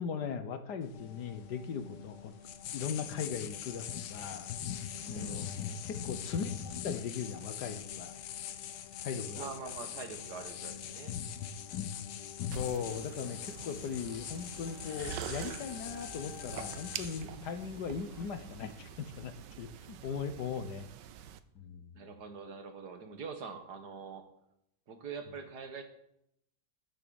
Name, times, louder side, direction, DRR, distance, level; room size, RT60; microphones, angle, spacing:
voice 1, 0.0-2.3 2.7-4.5 5.1-8.2 9.0-9.5 12.5-20.9 21.5-21.9, left 6 dB, 70° left, 9 dB, 1.6 m, -39 dB
sound 1, 0.8-19.3, left 9 dB, 85° left, 1.5 m, -43 dB
sound 2, 0.9-17.0, left 6 dB, 45° left, 2.0 m, -52 dB
voice 2, 5.0-5.5 9.3-11.2 21.9-24.3 24.9-25.8, right 5 dB, 65° right, 7 dB, 2.0 m, -44 dB
sound 3, 12.5-21.4, right 10 dB, 85° right, 1.4 m, -46 dB
12.5 x 7.5 x 7.0 m, 0.77 s
omnidirectional pair, 1.9 m